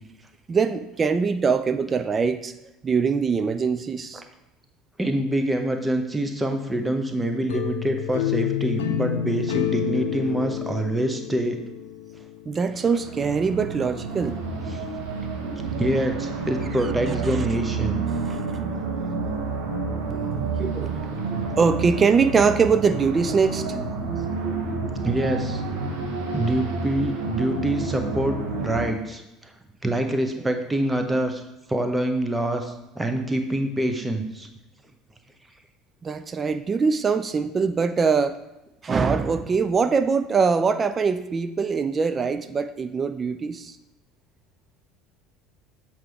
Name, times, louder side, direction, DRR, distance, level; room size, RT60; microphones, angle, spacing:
voice 1, 0.5-2.5 2.8-4.2 12.5-14.4 17.3-17.4 18.3-18.4 20.1-20.9 21.6-23.7 36.0-38.4 38.8-43.8, right 5 dB, 25° right, 11 dB, 0.3 m, -23 dB
voice 2, 5.0-11.6 14.7-14.8 15.8-18.0 20.8-20.9 24.5-24.6 25.0-25.6 26.3-29.5 29.8-31.4 31.7-34.5, right 1 dB, 10° right, 5 dB, 0.8 m, -25 dB
sound 1, 7.5-12.4, left 11 dB, 65° left, 0.5 m, -28 dB
sound 2, 12.7-28.9, right 4 dB, 60° right, 1.0 m, -29 dB
7.6 x 4.4 x 3.4 m, 0.93 s
figure-of-eight pair, 65°, 0 cm